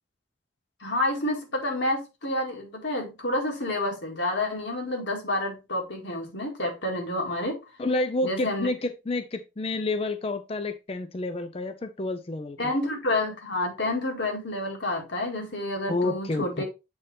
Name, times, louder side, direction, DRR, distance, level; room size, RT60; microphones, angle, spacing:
voice 1, 0.8-7.6 8.2-8.7 12.6-16.6, left 1 dB, 70° left, 1 dB, 2.2 m, -29 dB
voice 2, 7.8-12.6 15.9-16.6, left 2 dB, 30° left, 10 dB, 0.4 m, -29 dB
7.8 x 4.2 x 3.3 m, 0.26 s
head